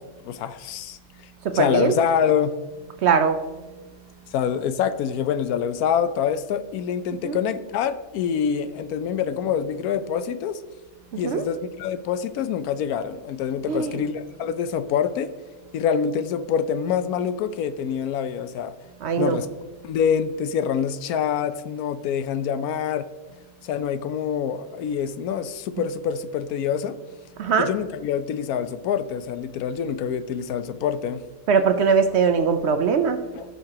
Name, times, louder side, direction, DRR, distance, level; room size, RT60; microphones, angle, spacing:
voice 1, 0.2-1.0 1.5-2.5 4.3-10.6 11.2-15.3 15.7-18.7 19.2-19.5 19.8-23.1 23.6-27.0 27.6-31.2 33.3-33.4, left 8 dB, 85° left, 12 dB, 1.1 m, -25 dB
voice 2, 1.4-1.9 3.0-3.4 7.2-7.4 11.1-11.4 13.7-14.0 19.0-19.4 27.4-27.7 31.5-33.2, right 6 dB, 65° right, 8 dB, 0.7 m, -21 dB
16.0 x 5.7 x 2.9 m, 1.2 s
omnidirectional pair, 1.5 m